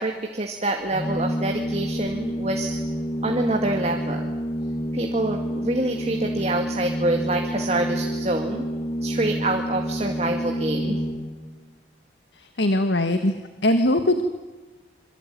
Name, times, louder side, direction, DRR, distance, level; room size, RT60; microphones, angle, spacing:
voice 1, 0.0-2.8 3.2-4.3 4.9-8.6 9.0-11.0, right 2 dB, 35° right, 3 dB, 2.0 m, -26 dB
Organ, 0.9-11.6, equal, 30° left, 1.5 m, -28 dB
voice 2, 12.4-13.4 13.6-14.2, left 1 dB, 70° left, 8 dB, 1.7 m, -21 dB
26.5 x 23.0 x 9.2 m, 1.2 s
head